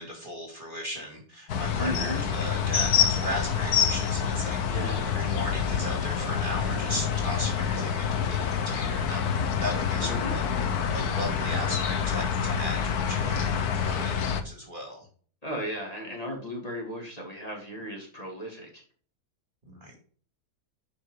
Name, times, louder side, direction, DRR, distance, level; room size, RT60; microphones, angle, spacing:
voice 1, 0.0-9.3 9.6-10.4 10.9-15.1 19.7-20.0, equal, 35° right, 0 dB, 2.8 m, -37 dB
sound 1, 1.5-14.4, left 7 dB, 80° left, 1.6 m, -27 dB
voice 2, 1.8-2.2 4.7-5.2 10.0-10.4 15.4-18.8, equal, 25° left, -1 dB, 2.9 m, -36 dB
11.0 x 5.9 x 3.9 m, 0.43 s
omnidirectional pair, 1.6 m